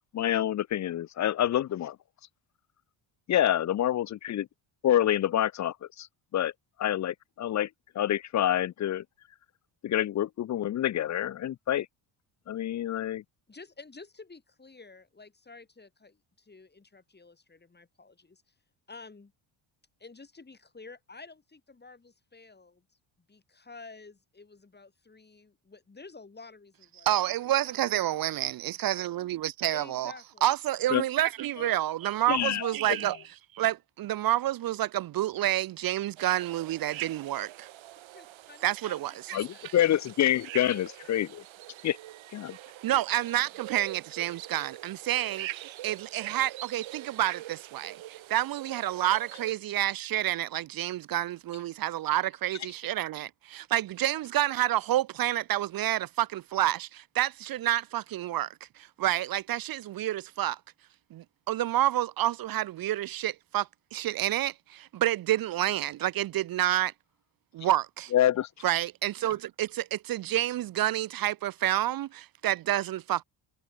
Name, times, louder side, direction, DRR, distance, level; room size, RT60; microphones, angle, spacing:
voice 1, 0.1-2.0 3.3-4.5 4.8-6.1 6.3-6.5 6.8-7.7 8.0-9.0 9.8-11.9 12.5-13.2 30.9-31.0 32.3-33.0 39.3-41.4 41.8-42.0 42.3-42.6 68.1-68.5, left 11 dB, 40° left, 0.4 m, -27 dB
voice 2, 13.5-18.4 18.9-19.3 20.0-22.8 23.3-27.2 27.6-27.9 29.7-30.4 38.1-39.9 40.6-40.8 43.2-43.3, left 3 dB, 20° left, 6.4 m, -51 dB
voice 3, 27.0-30.1 30.4-33.2 33.5-37.7 38.6-39.4 42.8-58.5 58.8-60.6 61.1-66.9 67.5-68.1 68.6-73.2, right 13 dB, 45° right, 0.5 m, -29 dB
sound 1, 36.2-49.5, right 14 dB, 65° right, 1.5 m, -44 dB
cardioid pair, 130°, 50 cm